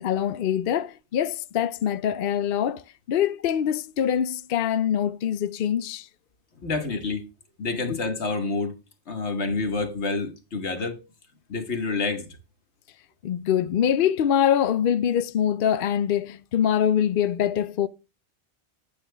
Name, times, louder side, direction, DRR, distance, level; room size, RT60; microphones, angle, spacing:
voice 1, 0.0-6.1 7.9-8.0 13.2-17.9, left 9 dB, 60° left, 0.7 m, -24 dB
voice 2, 6.6-7.2 7.6-8.7 9.1-11.0 11.5-12.3, left 3 dB, 90° left, 1.7 m, -28 dB
8.8 x 8.6 x 3.3 m
omnidirectional pair, 1.1 m